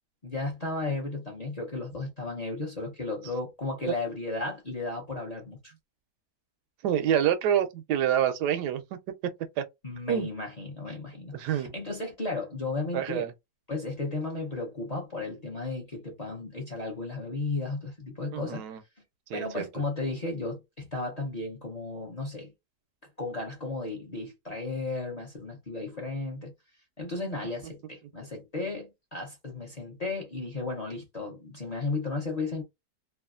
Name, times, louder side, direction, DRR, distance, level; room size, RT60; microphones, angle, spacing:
voice 1, 0.2-5.7 9.8-13.3 13.7-18.6 19.3-22.5 23.2-26.5 27.0-32.6, left 3 dB, 35° left, 0.7 m, -34 dB
voice 2, 6.8-9.0 9.6-9.7 10.1-10.3 11.3-11.7 12.9-13.3 18.3-18.8 19.3-19.7, right 10 dB, 90° right, 1.2 m, -27 dB
3.0 x 2.3 x 2.4 m
omnidirectional pair, 1.7 m